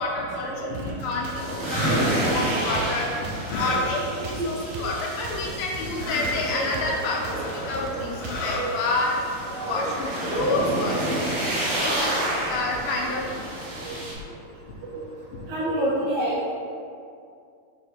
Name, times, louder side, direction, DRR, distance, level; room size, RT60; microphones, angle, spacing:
voice 1, 0.0-4.0 4.2-7.4 7.7-9.1 9.7-11.3 11.8-12.1 12.5-13.5, left 2 dB, 80° left, -2 dB, 2.4 m, -29 dB
sound 1, 0.7-8.7, right 3 dB, 85° right, 1.8 m, -39 dB
sound 2, 1.1-4.3 4.8-5.5 5.9-6.8 7.2-9.1 10.1-10.2 10.7-10.9 11.2-11.3 11.5-13.4 13.9-14.0, left 2 dB, 45° left, 1.6 m, -36 dB
sound 3, 1.3-14.1, right 1 dB, 45° right, 2.0 m, -30 dB
voice 2, 6.5-7.0 7.3-7.7 7.9-8.1 8.6-8.7 9.5-9.8 10.2-10.3 13.8-13.9 14.9-15.0 15.5-16.5, right 1 dB, 70° right, -6 dB, 3.1 m, -29 dB
6.6 x 3.6 x 5.9 m, 2.3 s
omnidirectional pair, 4.5 m